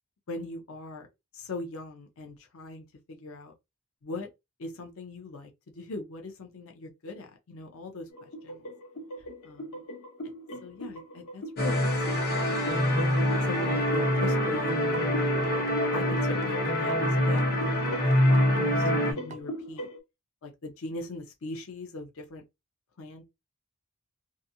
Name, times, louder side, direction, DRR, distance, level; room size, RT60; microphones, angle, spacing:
voice 1, 0.3-1.1 1.3-3.5 4.0-4.3 4.6-8.7 9.4-9.6 10.6-13.0 13.4-15.5 15.9-19.9 20.4-22.4 23.0-23.2, left 3 dB, 65° left, 0.6 m, -40 dB
sound 1, 8.1-20.0, equal, 85° left, 1.0 m, -40 dB
sound 2, 11.6-19.1, left 1 dB, 45° left, 0.9 m, -25 dB
sound 3, 12.7-19.4, right 1 dB, 30° right, 0.4 m, -40 dB
2.5 x 2.4 x 2.7 m
head